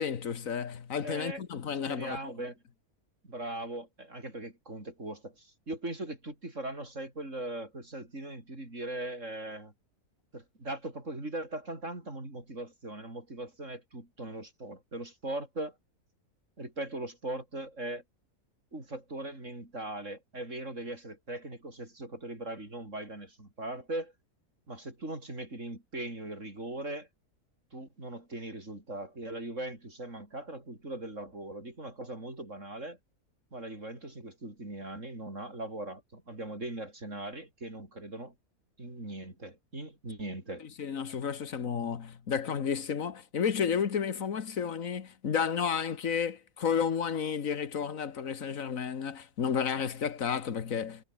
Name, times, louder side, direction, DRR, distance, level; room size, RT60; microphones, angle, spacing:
voice 1, 0.0-2.3 40.8-51.0, left 7 dB, 60° left, 1.8 m, -32 dB
voice 2, 1.0-1.4 1.9-2.6 3.2-9.7 10.3-15.7 16.6-18.0 18.7-24.1 24.7-27.1 27.7-33.0 33.5-38.3 38.8-40.7, right 1 dB, 50° right, 6.3 m, -40 dB
omnidirectional pair, 1.7 m